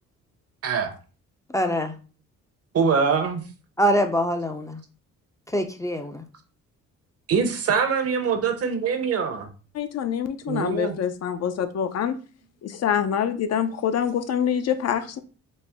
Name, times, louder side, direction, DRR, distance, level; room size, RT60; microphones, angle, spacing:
voice 1, 0.6-0.9 2.7-3.4 7.3-9.5 10.5-11.0, right 6 dB, 50° right, 7 dB, 0.8 m, -23 dB
voice 2, 1.5-1.9 3.8-4.8 5.5-6.2, equal, 10° left, 5 dB, 0.5 m, -24 dB
voice 3, 9.7-12.2 12.6-15.2, left 8 dB, 55° left, 9 dB, 0.6 m, -25 dB
4.2 x 2.1 x 3.5 m, 0.36 s
cardioid pair, 90°, 30 cm